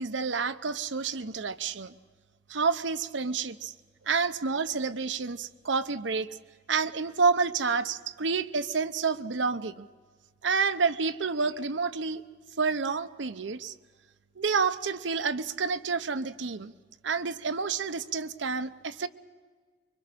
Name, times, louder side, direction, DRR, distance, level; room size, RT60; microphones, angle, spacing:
voice 1, 0.0-1.9 2.5-3.7 4.1-6.3 6.7-9.9 10.4-12.2 12.6-13.7 14.4-16.7 17.0-19.1, right 5 dB, 90° right, 13 dB, 0.8 m, -29 dB
25.0 x 23.0 x 6.3 m, 1.5 s
head